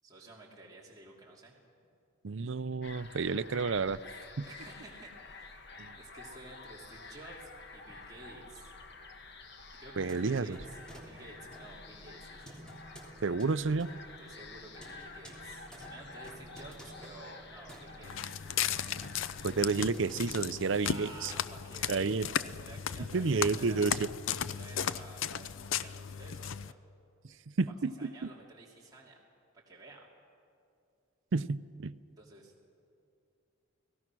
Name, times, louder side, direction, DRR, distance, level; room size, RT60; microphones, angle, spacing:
voice 1, 0.0-1.5 4.4-8.7 9.8-12.6 14.2-19.0 20.8-24.0 24.4-26.8 27.7-29.2 29.5-30.1 32.2-32.5, right 2 dB, 20° right, -4 dB, 3.0 m, -52 dB
voice 2, 2.2-4.0 4.4-4.5 5.8-5.9 10.0-10.6 13.2-13.9 19.4-21.3 21.9-22.3 23.1-24.1 27.6-28.3 31.3-31.9, right 4 dB, 70° right, 14 dB, 0.6 m, -30 dB
sound 1, 2.8-19.8, left 3 dB, 55° left, 1.4 m, -50 dB
sound 2, 9.9-21.1, equal, 5° left, 3.2 m, -53 dB
Walk footsteps, 18.0-26.7, left 8 dB, 75° left, 0.5 m, -36 dB
30.0 x 18.0 x 6.2 m, 2.4 s
head